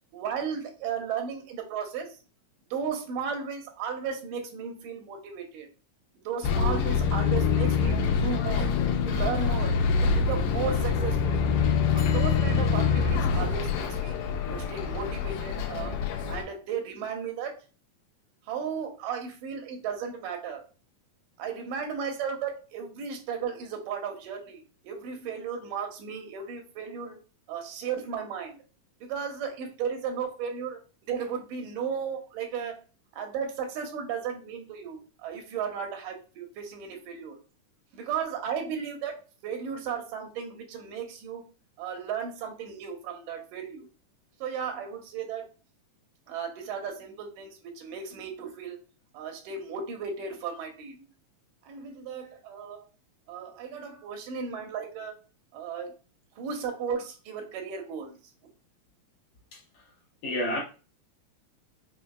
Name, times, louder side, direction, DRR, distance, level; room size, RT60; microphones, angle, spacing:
voice 1, 0.1-2.2 2.7-5.7 6.2-8.7 9.0-9.7 10.0-11.4 11.9-14.2 14.5-16.0 16.3-17.5 18.5-20.6 21.4-27.2 27.5-28.6 29.0-30.8 31.1-32.8 33.1-37.4 37.9-39.1 39.4-41.4 41.8-43.9 44.4-45.5 46.3-48.8 49.1-51.1 51.6-52.9 53.3-55.1 55.5-55.9 56.4-58.2, right 6 dB, 85° right, 2.4 m, -35 dB
Bus, 6.4-16.4, left 5 dB, 90° left, 2.2 m, -25 dB
voice 2, 59.5-59.8 60.2-60.6, left 1 dB, 70° left, 1.6 m, -30 dB
5.6 x 2.8 x 2.3 m
omnidirectional pair, 3.7 m